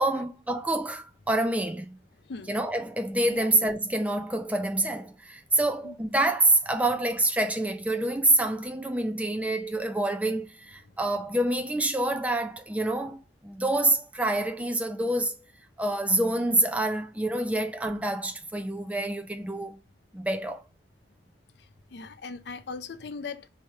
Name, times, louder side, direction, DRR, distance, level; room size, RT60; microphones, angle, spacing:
voice 1, 0.0-2.0 2.5-15.4 15.8-19.8 20.1-20.6, right 1 dB, 10° right, 0.4 m, -27 dB
voice 2, 21.9-23.5, left 4 dB, 65° left, 0.5 m, -38 dB
3.2 x 2.8 x 4.6 m
head